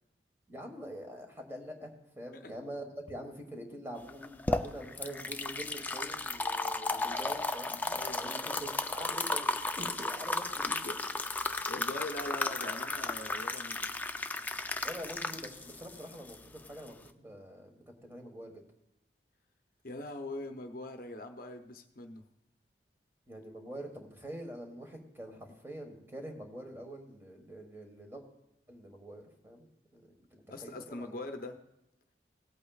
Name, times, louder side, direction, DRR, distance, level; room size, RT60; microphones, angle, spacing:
voice 1, 0.5-7.8 8.2-9.5 9.8-10.8 14.8-18.6 23.3-28.2 28.7-31.2, right 1 dB, 15° right, 3 dB, 1.4 m, -45 dB
sound 1, 4.1-17.1, left 2 dB, 10° left, 0.4 m, -34 dB
voice 2, 7.8-8.3 10.7-11.0 11.4-13.9 19.8-22.2 30.5-31.6, left 2 dB, 50° left, 6 dB, 0.8 m, -42 dB
18.0 x 8.5 x 2.4 m, 0.90 s
head